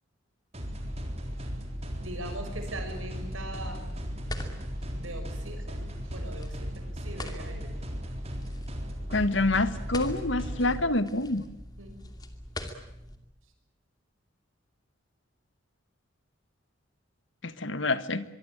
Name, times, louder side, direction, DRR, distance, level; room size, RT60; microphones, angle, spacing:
sound 1, 0.5-10.8, equal, 30° right, 3.8 m, -36 dB
sound 2, 0.9-13.2, left 1 dB, 20° left, 2.6 m, -44 dB
voice 1, 2.0-3.8 4.9-7.7 11.8-12.0, right 1 dB, 85° right, 6 dB, 6.5 m, -41 dB
voice 2, 9.1-11.4 17.4-18.2, left 2 dB, 65° left, 13 dB, 1.5 m, -27 dB
24.0 x 23.5 x 8.9 m, 0.87 s
head